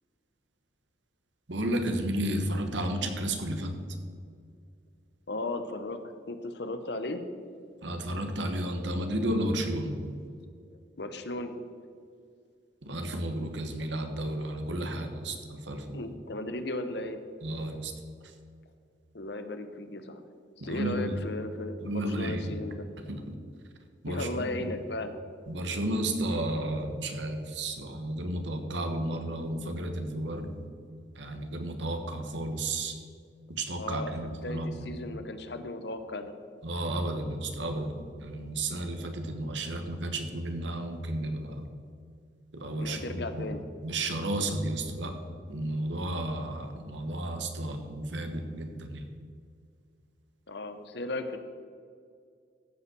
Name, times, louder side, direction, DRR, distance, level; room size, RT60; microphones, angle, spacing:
voice 1, 1.5-3.8 7.8-10.1 12.8-16.0 17.4-17.9 20.6-21.2 21.8-22.5 23.1-23.2 24.0-24.3 24.6-24.7 25.5-30.6 31.2-33.0 33.5-34.8 36.6-41.7 42.5-43.0 43.3-43.5 43.8-45.1 45.5-49.0, right 1 dB, 80° right, 6 dB, 1.3 m, -32 dB
voice 2, 5.3-6.0 6.3-7.2 11.0-11.6 15.9-17.2 19.1-20.2 20.6-22.9 24.1-25.3 33.8-36.3 42.8-43.6 50.5-51.4, left 2 dB, 65° left, 9 dB, 0.9 m, -36 dB
15.0 x 5.6 x 6.1 m, 2.2 s
head